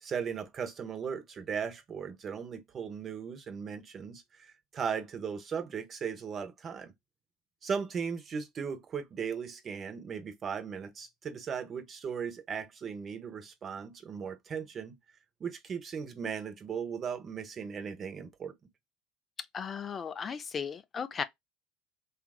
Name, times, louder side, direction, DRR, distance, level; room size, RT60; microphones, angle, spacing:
voice 1, 0.0-6.9 7.6-15.0 15.4-18.5, right 6 dB, 40° right, 0.8 m, -37 dB
voice 2, 19.5-21.2, left 6 dB, 35° left, 0.4 m, -36 dB
2.9 x 2.4 x 2.3 m
hypercardioid pair, 80°, 0 cm